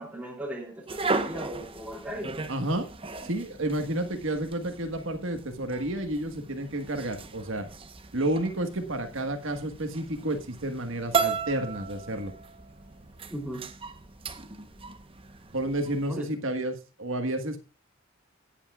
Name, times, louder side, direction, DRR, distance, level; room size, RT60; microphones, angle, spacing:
voice 1, 0.0-2.5 13.3-13.7 16.1-16.3, right 1 dB, 5° right, 0 dB, 3.0 m, -37 dB
sound 1, 0.9-16.1, right 4 dB, 25° right, 0.9 m, -36 dB
voice 2, 2.5-2.9 3.2-7.6 8.1-12.3 15.5-17.6, right 1 dB, 65° right, 6 dB, 1.5 m, -30 dB
17.5 x 8.4 x 2.3 m, 0.28 s
head